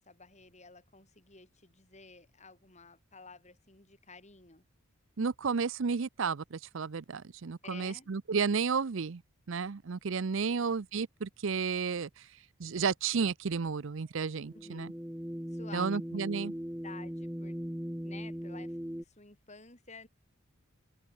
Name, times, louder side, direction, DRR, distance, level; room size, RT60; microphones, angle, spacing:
voice 1, 0.0-4.6 7.6-8.1 10.5-10.7 14.5-14.9 15.5-16.0 16.8-17.6 18.0-20.1, left 4 dB, 30° left, 4.6 m, -52 dB
voice 2, 5.2-9.2 9.5-12.1 12.6-14.9 15.7-16.5, right 5 dB, 60° right, 0.5 m, -32 dB
sound 1, 14.4-19.0, equal, 5° right, 1.0 m, -39 dB
open air
head